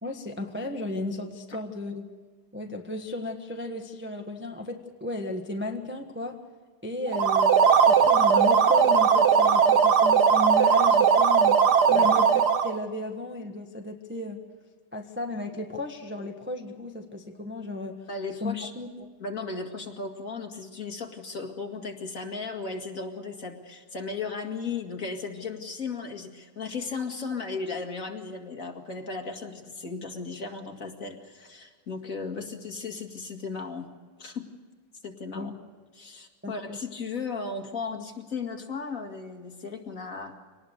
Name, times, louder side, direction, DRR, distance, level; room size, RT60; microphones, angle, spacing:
voice 1, 0.0-2.1 2.5-6.4 6.8-7.5 7.8-11.6 11.9-14.4 14.9-18.0 18.4-19.1 35.3-35.6 36.4-36.8, left 2 dB, 5° right, 3 dB, 1.2 m, -34 dB
sound 1, 7.1-12.8, right 6 dB, 60° right, 1.6 m, -19 dB
voice 2, 18.1-18.7 19.2-33.9 34.2-34.5 35.0-35.5 35.9-40.4, left 4 dB, 40° left, 3 dB, 2.5 m, -36 dB
24.5 x 19.0 x 6.6 m, 1.5 s
omnidirectional pair, 2.2 m